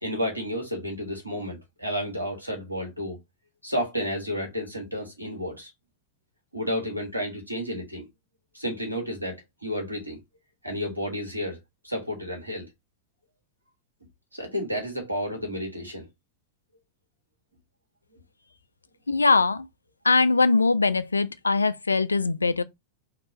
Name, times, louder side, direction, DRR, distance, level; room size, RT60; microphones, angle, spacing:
voice 1, 0.0-3.2 3.6-5.7 6.5-8.0 8.5-10.2 10.6-11.6 11.8-12.7 14.3-16.0, equal, 85° right, 1.4 m, -31 dB
voice 2, 19.1-19.7 20.0-22.6, left 3 dB, 80° left, 0.3 m, -21 dB
3.0 x 2.9 x 4.1 m
figure-of-eight pair, 90°, 0 cm